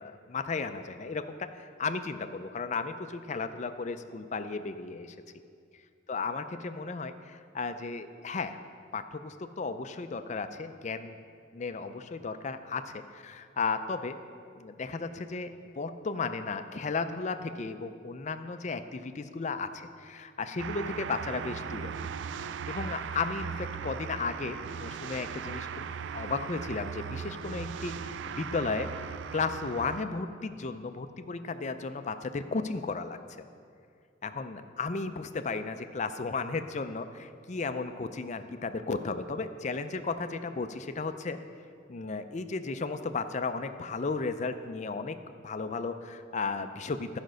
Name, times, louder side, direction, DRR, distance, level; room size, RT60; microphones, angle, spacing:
voice 1, 0.0-5.2 6.1-8.6 8.9-11.2 11.5-14.2 14.6-21.9 22.7-25.8 26.1-33.2 34.2-41.4 41.9-45.2 45.4-47.2, left 4 dB, 35° left, 9 dB, 0.4 m, -34 dB
sound 1, 20.6-30.0, right 6 dB, 65° right, 0.3 m, -38 dB
12.5 x 5.2 x 6.3 m, 2.3 s
head